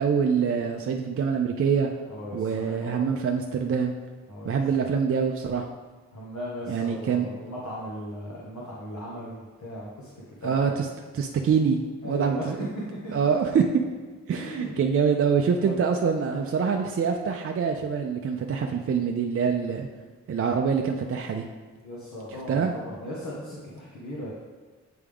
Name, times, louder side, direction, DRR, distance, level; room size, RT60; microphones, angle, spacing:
voice 1, 0.0-1.9 2.3-3.9 4.4-5.6 6.7-7.3 10.4-10.9 11.1-11.8 12.0-12.6 13.1-13.8 14.3-19.9 20.3-21.4 22.5-22.7, right 6 dB, 50° right, 3 dB, 0.4 m, -25 dB
voice 2, 2.1-3.1 4.3-4.6 6.1-10.1 10.4-10.7 12.0-12.6 12.9-13.0 13.5-13.6 14.3-14.7 15.6-15.8 21.8-24.3, equal, 70° left, -6 dB, 1.2 m, -37 dB
8.4 x 3.5 x 3.5 m, 1.3 s
wide cardioid pair, 115°, 30 cm